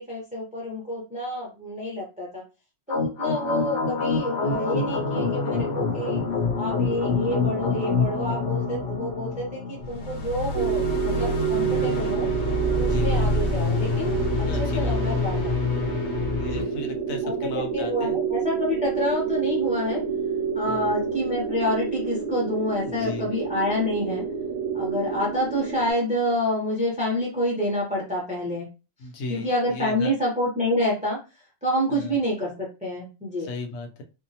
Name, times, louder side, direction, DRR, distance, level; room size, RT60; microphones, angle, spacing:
voice 1, 0.0-2.4 2.9-6.2 6.6-12.3 12.8-14.1 14.4-15.5 16.4-16.7 17.2-17.3 17.7-20.0 20.5-24.3 24.7-28.7 29.3-33.5, equal, 10° right, -3 dB, 0.5 m, -28 dB
sound 1, 2.9-16.6, left 3 dB, 60° left, 0.8 m, -26 dB
sound 2, 10.5-25.9, right 6 dB, 75° right, 0.4 m, -28 dB
voice 2, 12.7-13.1 14.5-14.9 16.3-18.2 20.7-20.9 22.8-23.3 29.0-29.5 29.7-30.1 31.9-32.2 33.5-34.0, left 3 dB, 85° left, 4 dB, 1.0 m, -35 dB
2.6 x 2.0 x 2.7 m, 0.30 s
omnidirectional pair, 1.4 m